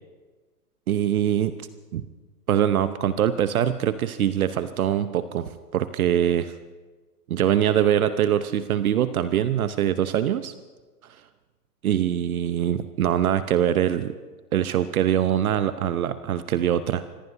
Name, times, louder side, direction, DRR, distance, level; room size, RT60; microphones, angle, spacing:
voice 1, 0.9-1.5 1.9-2.1 2.5-6.5 7.3-10.5 11.8-14.1 14.5-17.0, right 10 dB, 60° right, 12 dB, 0.9 m, -23 dB
25.0 x 21.5 x 2.7 m, 1.3 s
hypercardioid pair, 125°, 49 cm